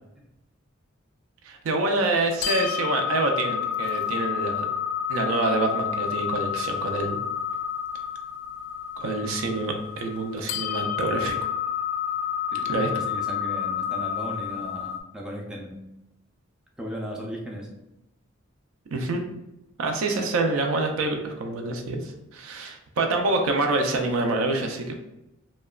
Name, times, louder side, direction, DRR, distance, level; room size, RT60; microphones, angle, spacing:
voice 1, 1.4-4.7 5.1-7.2 9.0-11.3 12.7-12.9 18.9-19.2 19.8-24.9, right 2 dB, 80° right, 3 dB, 0.4 m, -26 dB
sound 1, 2.4-15.0, left 9 dB, 80° left, 0.3 m, -30 dB
voice 2, 12.5-15.8 16.8-17.7, equal, 5° right, -2 dB, 0.3 m, -36 dB
2.8 x 2.1 x 2.3 m, 0.90 s
head